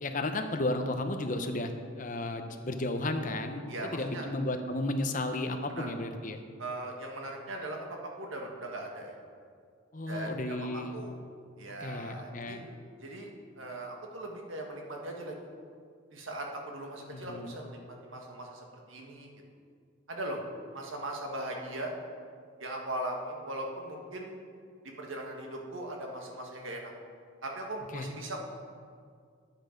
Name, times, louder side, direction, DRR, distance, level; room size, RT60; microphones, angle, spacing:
voice 1, 0.0-1.7 2.0-3.6 3.9-6.4 9.9-11.0 11.8-12.7 17.1-17.5 27.9-28.1, left 2 dB, 40° left, 6 dB, 0.8 m, -33 dB
voice 2, 3.7-4.3 5.7-5.9 6.6-9.1 10.1-11.1 11.6-12.6 13.0-13.3 13.6-15.4 16.1-19.3 20.1-20.4 20.7-21.9 22.6-24.3 25.0-26.9 27.4-28.4, right 1 dB, 70° right, 1 dB, 1.6 m, -39 dB
10.0 x 8.8 x 5.1 m, 2.2 s
head